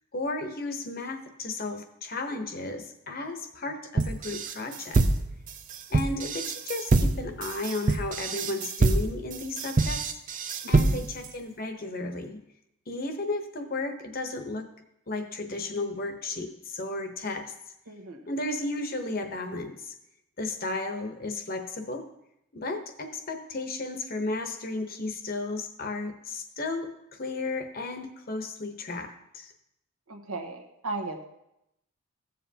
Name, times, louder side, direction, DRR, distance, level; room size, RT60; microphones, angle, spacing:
voice 1, 0.1-5.0 5.9-10.0 10.7-12.4 12.9-14.7 15.1-17.5 18.3-19.9 20.4-22.0 22.5-26.9 27.2-29.5, left 2 dB, 40° left, 6 dB, 0.8 m, -34 dB
sound 1, 4.0-11.3, right 3 dB, 35° right, 0.4 m, -25 dB
voice 2, 10.6-11.1 17.9-18.3 30.1-31.3, right 3 dB, 85° right, 3 dB, 1.2 m, -37 dB
14.5 x 7.5 x 2.8 m, 0.83 s
head